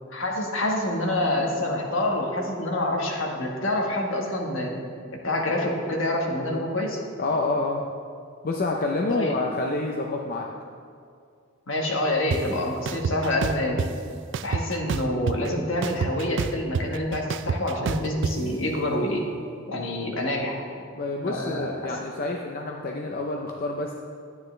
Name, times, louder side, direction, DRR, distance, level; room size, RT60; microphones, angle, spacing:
voice 1, 0.1-4.7 5.2-7.0 9.1-9.3 11.7-13.8 14.4-19.2 19.7-20.6 21.2-21.9, left 1 dB, 70° left, 0 dB, 1.5 m, -27 dB
voice 2, 7.2-7.9 8.4-10.5 21.0-23.9, left 2 dB, 45° left, 1 dB, 0.6 m, -28 dB
sound 1, 12.3-12.4 12.9-13.9 14.3-15.5 15.8-18.3, right 5 dB, 60° right, 0.3 m, -27 dB
11.5 x 9.4 x 3.3 m, 2.3 s
head